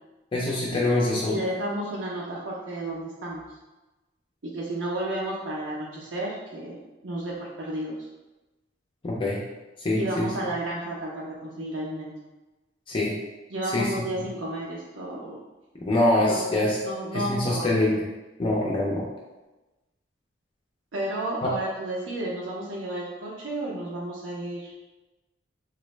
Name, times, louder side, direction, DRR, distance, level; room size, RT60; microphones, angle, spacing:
voice 1, 0.3-1.4 9.0-9.4 9.8-10.3 12.9-13.1 13.7-13.9 15.9-16.8 17.1-18.0 18.4-19.1 21.4-21.5, left 1 dB, 25° left, -4 dB, 0.4 m, -24 dB
voice 2, 1.2-3.4 4.4-6.8 7.0-8.1 9.9-12.1 13.5-15.4 16.1-16.4 16.8-17.9 20.9-24.7, right 1 dB, 75° right, -4 dB, 0.6 m, -32 dB
3.8 x 2.1 x 3.1 m, 1.1 s
head